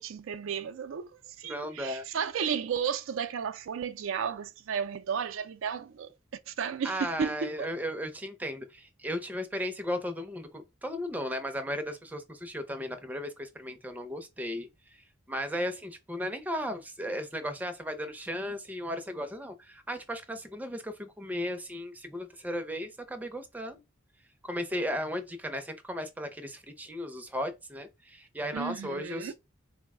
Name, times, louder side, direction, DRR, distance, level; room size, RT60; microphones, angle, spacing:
voice 1, 0.0-6.1 6.5-7.7 28.5-29.3, right 7 dB, 90° right, 0.4 m, -33 dB
voice 2, 1.4-2.1 6.8-15.0 15.3-23.8 24.4-29.3, equal, 10° right, 0.5 m, -35 dB
3.9 x 2.1 x 3.5 m
head